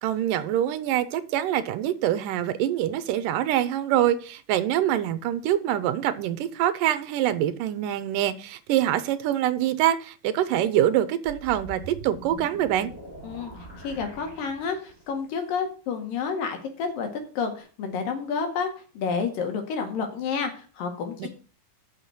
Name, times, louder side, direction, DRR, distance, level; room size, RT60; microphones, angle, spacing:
voice 1, 0.0-12.9 21.2-21.3, right 12 dB, 80° right, 13 dB, 2.4 m, -25 dB
sound 1, 11.3-15.2, right 2 dB, 5° left, 5.0 m, -43 dB
voice 2, 13.8-17.1 17.4-21.3, left 5 dB, 85° left, 5 dB, 3.6 m, -30 dB
7.3 x 6.5 x 7.8 m, 0.37 s
omnidirectional pair, 3.9 m